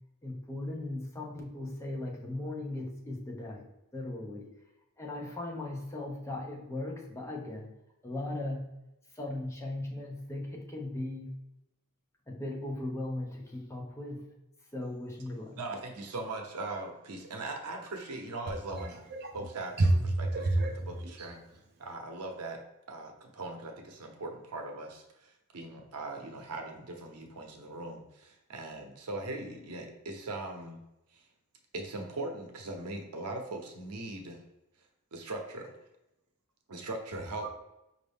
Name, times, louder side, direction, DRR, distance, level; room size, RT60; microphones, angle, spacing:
voice 1, 0.2-4.5 5.0-7.7 8.0-8.7 9.1-11.3 12.3-14.3 14.7-15.6, left 2 dB, 15° left, -2 dB, 0.7 m, -38 dB
voice 2, 15.6-18.9 19.3-19.7 20.2-20.7 21.0-21.4 21.8-22.6 22.9-30.8 31.7-34.4 35.1-35.7 36.7-37.5, right 2 dB, 85° right, 3 dB, 0.7 m, -40 dB
voice 3, 18.7-19.9 20.2-21.4 37.4-37.5, right 2 dB, 45° right, 3 dB, 0.5 m, -30 dB
5.2 x 2.6 x 3.4 m, 0.91 s
head